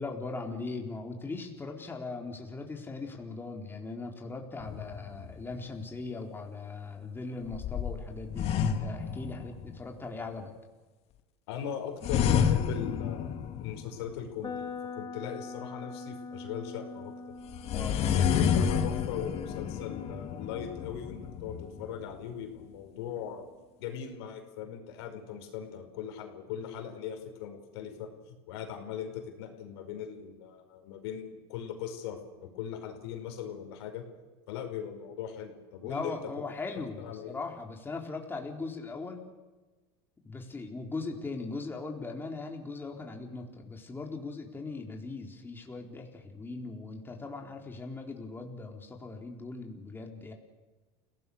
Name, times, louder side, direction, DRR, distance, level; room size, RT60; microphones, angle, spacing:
voice 1, 0.0-10.5 17.7-18.3 35.8-39.3 40.2-50.3, left 3 dB, 15° left, 2 dB, 4.0 m, -39 dB
sound 1, 4.6-5.6 7.5-9.8 12.0-14.2 17.5-22.2, left 8 dB, 50° left, 2.4 m, -30 dB
voice 2, 11.5-13.3 13.6-14.7 14.9-17.3 17.9-23.5 23.8-34.0 34.5-36.2 37.0-37.4, left 8 dB, 80° left, 5 dB, 5.1 m, -39 dB
sound 2, 14.4-22.4, left 4 dB, 30° left, 3.7 m, -44 dB
29.5 x 18.0 x 6.6 m, 1.2 s
supercardioid pair, 100°, 13 cm